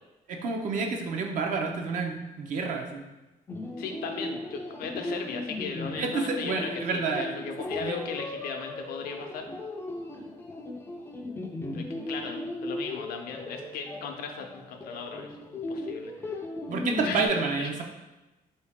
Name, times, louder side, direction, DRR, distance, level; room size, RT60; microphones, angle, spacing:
voice 1, 0.3-3.0 6.0-7.3 7.8-8.0 16.7-17.8, right 4 dB, 55° right, 2 dB, 0.6 m, -29 dB
sound 1, 3.5-17.3, left 2 dB, 15° left, 0.4 m, -37 dB
voice 2, 3.8-9.5 11.7-16.4 17.0-17.2 17.6-17.8, left 5 dB, 75° left, 4 dB, 0.6 m, -37 dB
4.6 x 2.7 x 3.5 m, 1.1 s
cardioid pair, 145°, 16 cm